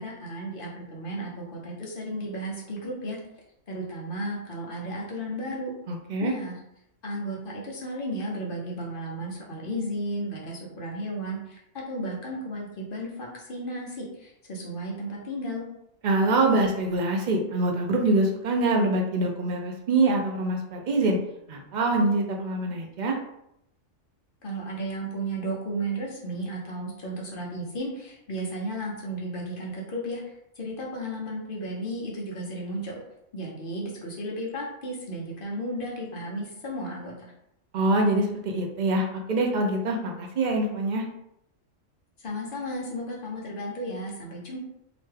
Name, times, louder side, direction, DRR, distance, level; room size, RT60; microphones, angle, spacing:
voice 1, 0.0-3.2 3.7-5.7 6.2-6.6 7.0-15.7 24.4-33.0 33.3-37.3 42.2-44.6, right 1 dB, 50° left, -2 dB, 0.9 m, -34 dB
voice 2, 5.9-6.3 16.0-21.2 21.5-23.2 37.7-41.0, right 2 dB, 60° right, 1 dB, 0.5 m, -24 dB
2.9 x 2.2 x 3.2 m, 0.79 s
omnidirectional pair, 1.3 m